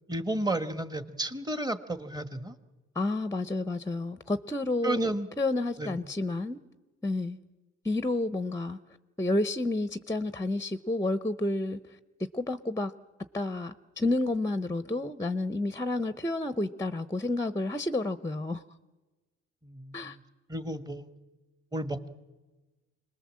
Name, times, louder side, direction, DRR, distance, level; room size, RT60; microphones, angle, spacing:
voice 1, 0.1-2.5 4.8-5.3 5.8-6.0 19.6-20.2 20.5-21.1 21.7-22.1, right 1 dB, 15° right, 10 dB, 1.5 m, -32 dB
voice 2, 3.0-6.6 7.0-7.4 7.8-8.8 9.2-11.8 12.3-12.9 13.3-18.6 19.9-20.2, left 2 dB, 10° left, 12 dB, 0.8 m, -30 dB
26.0 x 20.0 x 7.6 m, 1.2 s
cardioid pair, 90°, 30 cm